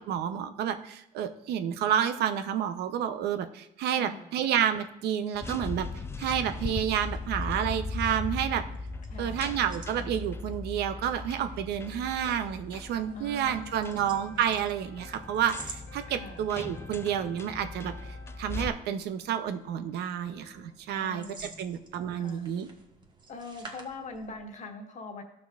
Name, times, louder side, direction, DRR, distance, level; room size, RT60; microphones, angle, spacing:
voice 1, 0.0-5.9 6.2-8.6 9.2-17.9 18.4-22.7, right 9 dB, 75° right, 9 dB, 0.7 m, -30 dB
voice 2, 3.9-4.3 9.1-9.4 13.1-14.0 16.1-16.4 20.9-21.7 22.1-22.5 23.3-25.2, left 3 dB, 45° left, 5 dB, 1.4 m, -43 dB
sound 1, 5.3-18.7, left 3 dB, 15° left, 0.4 m, -38 dB
sound 2, 5.7-24.6, right 3 dB, 25° right, 1.4 m, -52 dB
sound 3, 12.9-20.7, left 1 dB, 65° left, 1.6 m, -54 dB
14.5 x 5.9 x 2.4 m, 0.80 s
cardioid pair, 110°, 17 cm